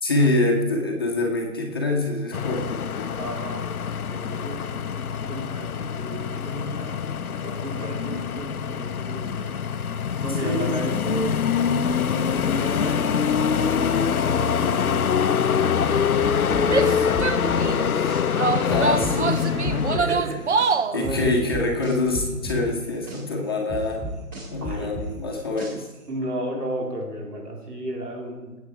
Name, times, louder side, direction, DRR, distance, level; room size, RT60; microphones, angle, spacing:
voice 1, 0.0-3.1 10.4-10.8 13.2-13.4 18.6-19.8 20.9-24.0 24.5-25.9, left 2 dB, 15° left, -2 dB, 1.0 m, -25 dB
sound 1, 2.3-20.0, left 7 dB, 70° left, 0.7 m, -24 dB
voice 2, 3.2-3.8 4.1-4.9 5.2-7.1 7.4-9.6 10.2-11.5 12.2-13.2 13.7-17.6 19.7-20.5 20.9-21.3 24.6-24.9 26.1-28.6, right 1 dB, 85° right, 0 dB, 4.2 m, -34 dB
sound 2, 16.2-18.2 18.7-20.7 21.0-23.2 23.7-26.0, right 1 dB, 10° right, 2.2 m, -33 dB
Female speech woman speaking / Yell, 16.6-17.9 18.4-21.0, right 4 dB, 50° right, 0.8 m, -25 dB
20.0 x 8.3 x 4.8 m, 1.2 s
figure-of-eight pair, 165°, 45 cm